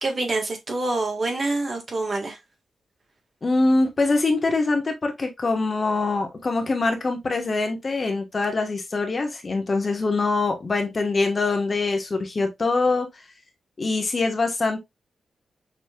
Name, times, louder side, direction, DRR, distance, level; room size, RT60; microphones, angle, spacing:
voice 1, 0.0-2.4, right 2 dB, 45° right, 1.6 m, -26 dB
voice 2, 3.4-13.1 13.8-14.8, left 3 dB, 40° left, 1.2 m, -23 dB
6.0 x 3.1 x 2.3 m
cardioid pair, 80°, 0 cm